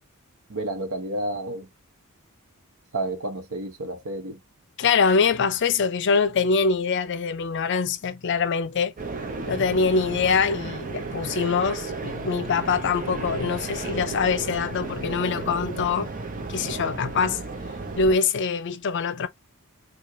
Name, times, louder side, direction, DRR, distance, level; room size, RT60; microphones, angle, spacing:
voice 1, 0.5-1.7 2.9-4.4, right 2 dB, 75° right, 0.9 m, -30 dB
voice 2, 4.8-8.9 9.5-16.1 16.5-17.4 18.0-19.3, left 5 dB, 55° left, 0.5 m, -24 dB
sound 1, 9.0-18.2, right 3 dB, 40° right, 0.7 m, -34 dB
4.7 x 2.3 x 2.6 m
head